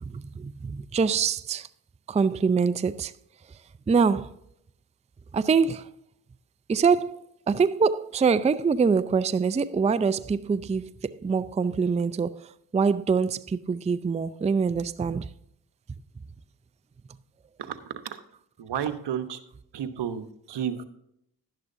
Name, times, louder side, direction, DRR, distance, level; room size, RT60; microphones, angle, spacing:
voice 1, 0.0-1.7 2.1-3.1 3.5-3.6 3.9-4.3 5.3-5.9 6.7-15.3, right 5 dB, 15° right, 0.4 m, -25 dB
voice 2, 17.6-18.2 18.6-19.4 19.7-20.8, right 9 dB, 75° right, 1.0 m, -32 dB
11.5 x 11.0 x 2.6 m
cardioid pair, 55°, 41 cm